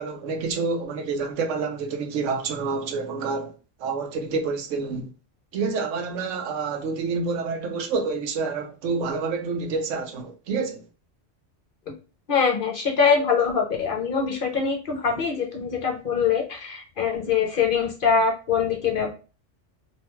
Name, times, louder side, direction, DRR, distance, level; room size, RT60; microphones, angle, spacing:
voice 1, 0.0-3.5 3.8-5.1 5.5-10.8, right 4 dB, 90° right, 1.0 m, -28 dB
voice 2, 12.3-19.1, left 6 dB, 55° left, 0.7 m, -23 dB
2.7 x 2.2 x 2.9 m
omnidirectional pair, 1.2 m